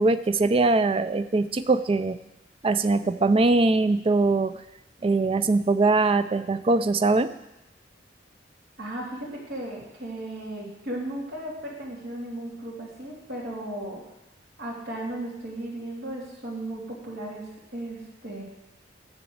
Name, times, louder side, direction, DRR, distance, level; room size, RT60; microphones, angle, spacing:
voice 1, 0.0-2.2 2.6-4.5 5.0-7.3, right 3 dB, 30° right, 12 dB, 0.4 m, -22 dB
voice 2, 8.8-14.0 14.6-18.4, right 1 dB, 60° right, -5 dB, 3.2 m, -35 dB
7.0 x 6.8 x 7.8 m, 0.92 s
head